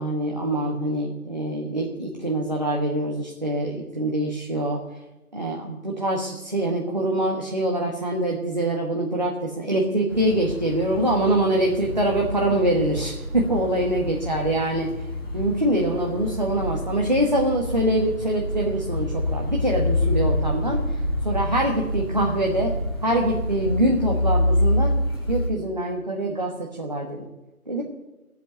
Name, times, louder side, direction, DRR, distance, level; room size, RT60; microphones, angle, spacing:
voice 1, 0.0-4.8 5.3-14.9 15.3-21.0 21.2-22.7 23.0-24.9 25.3-27.2 27.7-27.8, right 1 dB, 30° right, -1 dB, 1.3 m, -24 dB
sound 1, 10.1-25.5, left 1 dB, 15° left, 1.9 m, -27 dB
15.0 x 7.8 x 8.8 m, 1.0 s
figure-of-eight pair, 175°, 45 cm